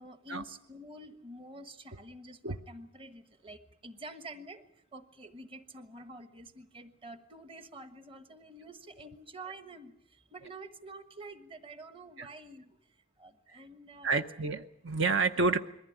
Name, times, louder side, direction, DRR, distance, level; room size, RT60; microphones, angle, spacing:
voice 1, 0.0-14.5 15.4-15.5, right 2 dB, 25° right, 9 dB, 1.3 m, -48 dB
voice 2, 14.0-15.6, right 3 dB, 60° right, 7 dB, 0.8 m, -29 dB
22.0 x 15.5 x 10.0 m, 0.78 s
head